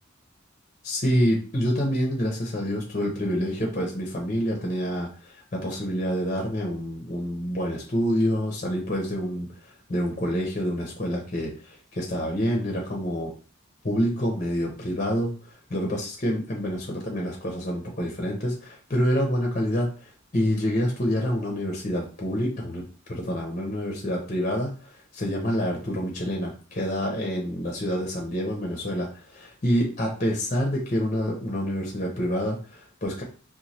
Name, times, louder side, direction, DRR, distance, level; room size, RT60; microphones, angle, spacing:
voice 1, 0.8-9.5 9.9-13.3 13.8-15.3 15.7-22.8 23.1-33.2, equal, 35° left, 0 dB, 0.7 m, -27 dB
3.0 x 2.2 x 4.1 m, 0.38 s
head